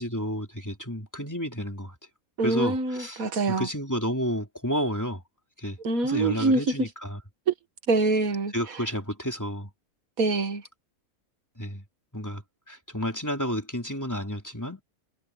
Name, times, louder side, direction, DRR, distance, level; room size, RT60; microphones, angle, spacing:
voice 1, 0.0-2.0 2.4-5.2 5.6-5.8 6.0-7.2 8.5-9.7 11.6-11.8 12.1-14.8, equal, 10° left, 3.6 m, -31 dB
voice 2, 2.4-3.7 5.8-6.6 7.5-7.6 7.9-8.5 10.2-10.6, right 3 dB, 80° right, 2.0 m, -24 dB
omnidirectional pair, 1.4 m